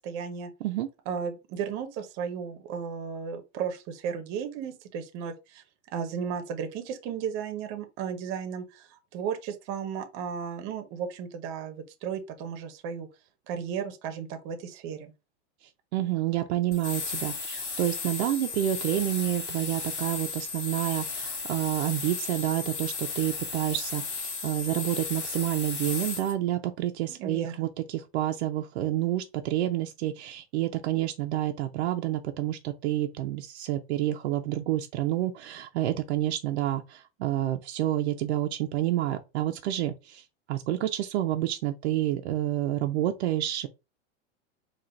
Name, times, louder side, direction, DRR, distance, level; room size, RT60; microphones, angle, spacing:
voice 1, 0.0-0.5 1.1-5.6 5.9-13.1 13.5-15.1 27.1-27.7, right 7 dB, 35° right, 0.8 m, -34 dB
voice 2, 15.9-43.7, right 13 dB, 60° right, 0.6 m, -29 dB
sound 1, 16.7-26.3, left 4 dB, 60° left, 2.2 m, -35 dB
3.8 x 2.4 x 4.3 m
supercardioid pair, 160°, 36 cm